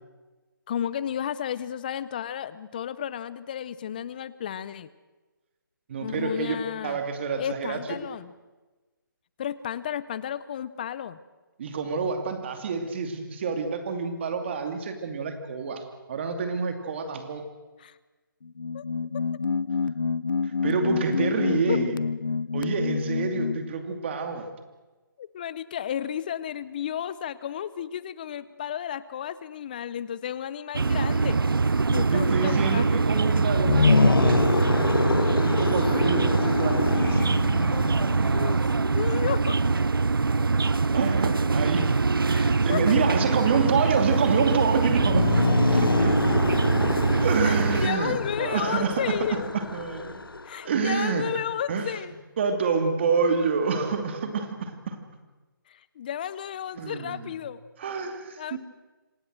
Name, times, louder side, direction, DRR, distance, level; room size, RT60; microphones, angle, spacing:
voice 1, 0.7-4.9 6.0-7.0 7.4-8.3 9.4-11.2 17.8-18.0 18.7-18.9 19.1-19.2 21.5-21.8 25.2-31.4 31.9-32.9 37.7-37.9 38.3-39.7 42.3-43.1 47.4-49.5 50.4-52.2 55.7-57.6 58.4-58.6, left 9 dB, 25° left, 17 dB, 0.7 m, -33 dB
voice 2, 5.9-6.6 6.8-7.8 11.6-15.8 16.1-17.4 20.4-21.9 22.5-24.5 32.1-37.2 40.9-41.9 42.3-45.3 45.7-46.2 47.2-50.3 50.6-51.3 51.7-51.9 52.4-55.0 56.8-57.3 57.8-58.6, right 5 dB, 30° right, 6 dB, 2.6 m, -27 dB
sound 1, 18.4-23.7, left 5 dB, 70° left, 0.8 m, -28 dB
sound 2, 30.7-47.9, right 4 dB, 85° right, 0.8 m, -23 dB
sound 3, 33.5-38.7 44.9-50.6, left 3 dB, 85° left, 1.6 m, -26 dB
26.5 x 17.5 x 7.8 m, 1.2 s
figure-of-eight pair, 160°, 12 cm